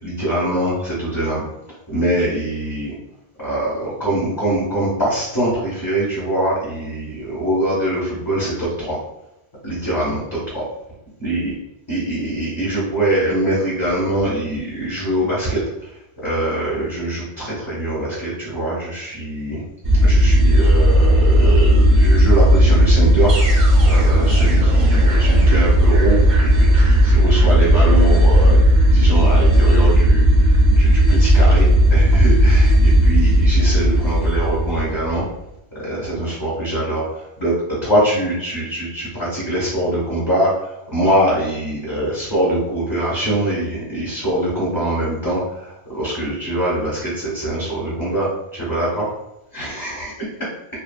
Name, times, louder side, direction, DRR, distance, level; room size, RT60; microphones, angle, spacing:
voice 1, 0.0-1.4 1.9-2.9 3.4-9.0 9.6-10.6 11.2-11.5 11.9-15.6 16.2-19.6 20.0-35.2 35.7-37.5 37.8-40.5 40.9-48.3 48.5-49.1 49.5-50.1, right 1 dB, 20° left, -9 dB, 1.0 m, -23 dB
sound 1, 19.8-35.2, equal, 50° right, 0.7 m, -14 dB
3.0 x 2.3 x 2.3 m, 0.85 s
omnidirectional pair, 1.1 m